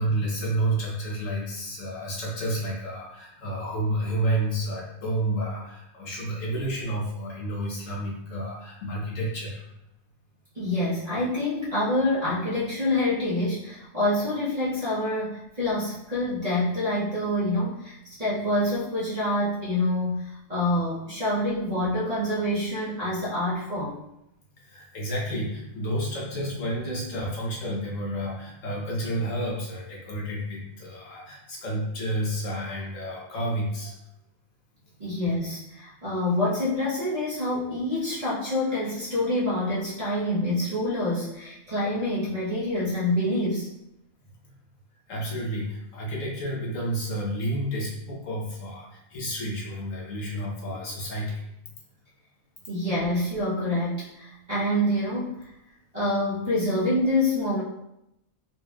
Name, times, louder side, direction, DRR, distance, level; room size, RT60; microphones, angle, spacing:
voice 1, 0.0-9.6 24.6-34.0 45.1-51.4, right 1 dB, 65° left, -4 dB, 1.2 m, -30 dB
voice 2, 10.5-23.9 26.8-27.0 35.0-43.7 50.7-50.8 52.7-55.4 55.9-57.6, left 1 dB, 30° right, -10 dB, 1.0 m, -26 dB
4.1 x 3.2 x 2.3 m, 0.84 s
omnidirectional pair, 1.5 m